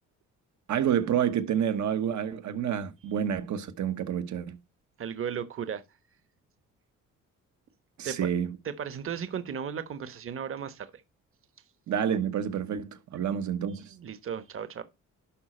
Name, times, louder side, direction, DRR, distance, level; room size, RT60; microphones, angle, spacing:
voice 1, 0.7-4.6 8.0-8.6 11.9-13.9, right 9 dB, 70° right, 1.3 m, -29 dB
voice 2, 5.0-5.8 8.0-8.2 8.6-10.9 13.9-14.8, right 7 dB, 45° right, 1.2 m, -35 dB
11.5 x 5.0 x 4.4 m
cardioid pair, 90°, 30 cm